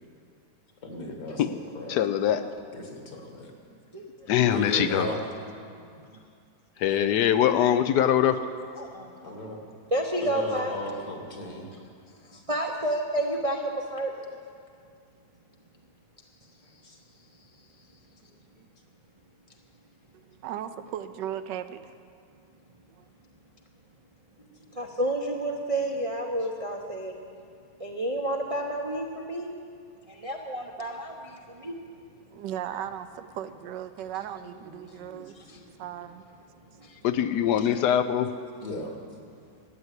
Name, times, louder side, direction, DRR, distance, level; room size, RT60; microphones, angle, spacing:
voice 1, 0.8-2.0 2.7-3.5 4.5-5.2 9.2-9.6 10.2-11.7 12.3-12.4 16.6-17.0 18.5-18.6 24.4-24.9 32.7-32.9 34.2-34.3 34.6-35.7 37.2-37.3 38.6-39.0, left 1 dB, 55° left, 2 dB, 2.2 m, -37 dB
voice 2, 1.9-2.4 4.3-5.1 6.8-8.4 37.0-38.3, left 10 dB, 80° left, 11 dB, 1.2 m, -23 dB
voice 3, 3.9-4.6 5.8-6.0 8.8-9.4 9.9-10.8 12.2-14.1 24.7-27.1 27.8-29.5 30.1-31.8 35.3-35.6 36.8-37.0 37.6-37.7, right 1 dB, 35° right, 1 dB, 0.5 m, -31 dB
voice 4, 20.1-22.0 23.0-23.1 32.3-35.3 35.8-36.2, right 10 dB, 85° right, 11 dB, 1.3 m, -37 dB
13.0 x 9.4 x 8.2 m, 2.4 s
omnidirectional pair, 1.9 m